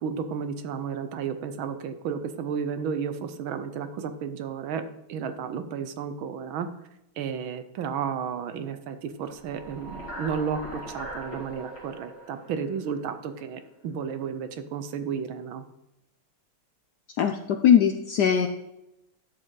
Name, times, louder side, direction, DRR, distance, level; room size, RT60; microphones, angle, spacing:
voice 1, 0.0-4.8 5.1-6.7 7.2-15.6, right 7 dB, 70° right, 9 dB, 1.6 m, -32 dB
sound 1, 9.4-13.6, right 1 dB, 55° left, 2.8 m, -41 dB
voice 2, 17.2-18.5, left 8 dB, 70° left, 6 dB, 1.0 m, -20 dB
11.0 x 7.7 x 3.9 m, 0.87 s
omnidirectional pair, 2.4 m